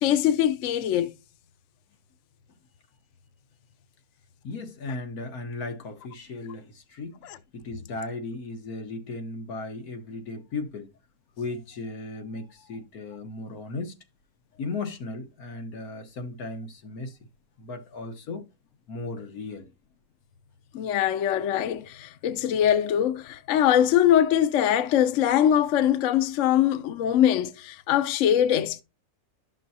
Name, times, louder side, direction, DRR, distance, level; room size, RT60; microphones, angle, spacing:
voice 1, 0.0-1.1 20.7-28.8, left 10 dB, 65° left, 1.0 m, -22 dB
voice 2, 4.4-10.9 11.4-14.0 14.6-17.2 17.6-18.5 18.9-19.7, left 3 dB, 90° left, 1.8 m, -36 dB
12.0 x 6.1 x 2.8 m
omnidirectional pair, 1.5 m